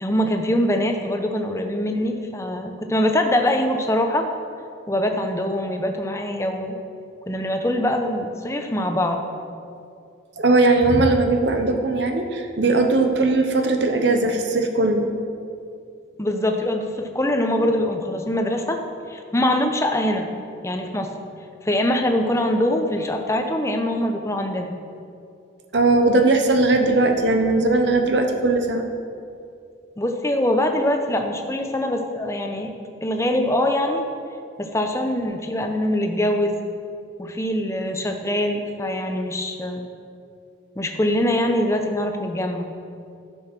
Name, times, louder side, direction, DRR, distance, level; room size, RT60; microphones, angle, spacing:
voice 1, 0.0-4.3 4.9-6.8 7.3-9.2 16.2-18.8 19.1-20.3 20.6-21.1 21.6-24.7 30.0-32.7 33.0-34.0 34.6-36.6 37.2-39.8 40.8-42.7, left 1 dB, 15° left, 4 dB, 0.8 m, -23 dB
voice 2, 10.4-15.1 25.7-28.9, right 2 dB, 65° right, 5 dB, 0.8 m, -19 dB
12.0 x 6.3 x 6.1 m, 2.4 s
head